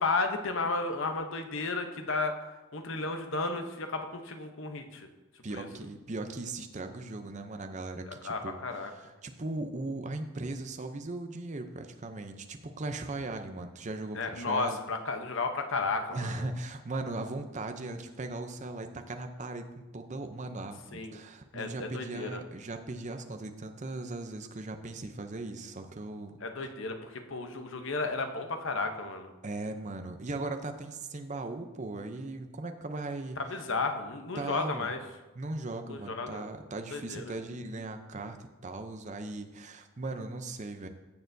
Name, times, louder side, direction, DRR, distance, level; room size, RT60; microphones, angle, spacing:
voice 1, 0.0-5.1 5.5-5.7 8.1-8.9 14.1-16.4 20.9-21.2 21.5-22.4 26.4-29.3 33.5-35.0 35.9-36.4 36.9-37.3, left 3 dB, 60° left, 6 dB, 0.8 m, -33 dB
voice 2, 5.4-14.8 16.1-26.7 29.4-33.4 34.4-34.9 35.3-40.9, right 2 dB, 35° right, 7 dB, 0.6 m, -38 dB
15.0 x 6.6 x 2.7 m, 1.1 s
head